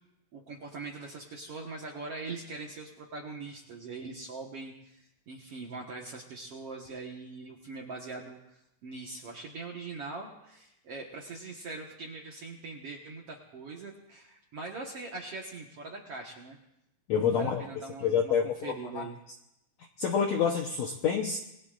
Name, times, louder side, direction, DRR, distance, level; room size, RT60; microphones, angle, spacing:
voice 1, 0.3-8.4 8.8-16.6 17.2-19.2, right 3 dB, 55° right, -1 dB, 1.7 m, -42 dB
voice 2, 17.1-17.6 18.0-19.0 20.0-21.4, left 7 dB, 75° left, 2 dB, 1.6 m, -28 dB
27.0 x 20.5 x 2.5 m, 0.86 s
omnidirectional pair, 4.4 m